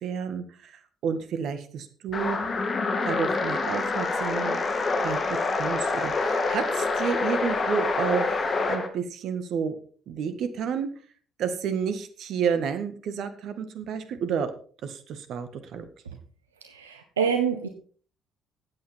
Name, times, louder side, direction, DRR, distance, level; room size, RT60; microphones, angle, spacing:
voice 1, 0.0-2.4 3.0-4.6 5.0-9.8 10.1-10.9 11.4-14.5 14.8-16.2, right 7 dB, 60° right, 10 dB, 1.6 m, -30 dB
sound 1, 2.1-8.9, left 3 dB, 40° left, 2.4 m, -26 dB
voice 2, 16.6-17.7, right 7 dB, 90° right, 6 dB, 0.9 m, -26 dB
13.5 x 8.9 x 4.4 m, 0.43 s
hypercardioid pair, 45°, 0 cm